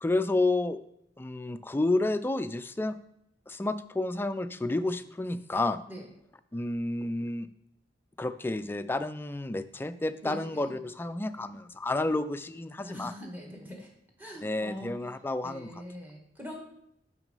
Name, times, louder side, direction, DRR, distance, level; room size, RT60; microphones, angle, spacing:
voice 1, 0.0-0.8 1.2-3.0 3.5-5.8 6.5-7.5 8.2-13.1 14.4-15.8, left 2 dB, 10° left, 11 dB, 0.3 m, -30 dB
voice 2, 10.2-10.8 12.8-13.9 14.2-14.9 15.4-16.6, equal, 10° right, 0 dB, 1.5 m, -42 dB
6.2 x 6.0 x 5.3 m, 0.77 s
head